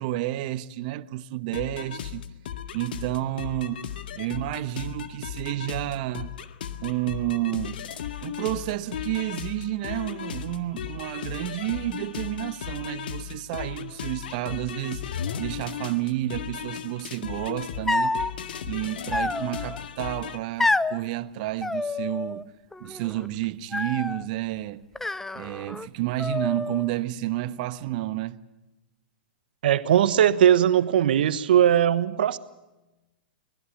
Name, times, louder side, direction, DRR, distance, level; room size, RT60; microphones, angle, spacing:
voice 1, 0.0-2.2 2.7-6.3 6.8-7.8 8.2-18.2 18.6-22.5 22.8-24.8 25.3-28.4 31.1-31.3, right 15 dB, 50° right, 1.2 m, -30 dB
sound 1, 1.5-20.4, left 9 dB, 70° left, 1.8 m, -36 dB
sound 2, 17.9-18.3 19.1-19.8 20.6-21.0 21.6-22.4 22.7-23.3 23.7-24.3 25.0-25.9 26.2-26.9, left 2 dB, 5° left, 0.7 m, -28 dB
voice 2, 29.6-32.4, right 10 dB, 70° right, 1.3 m, -19 dB
24.5 x 20.0 x 7.3 m
hypercardioid pair, 115°, 5 cm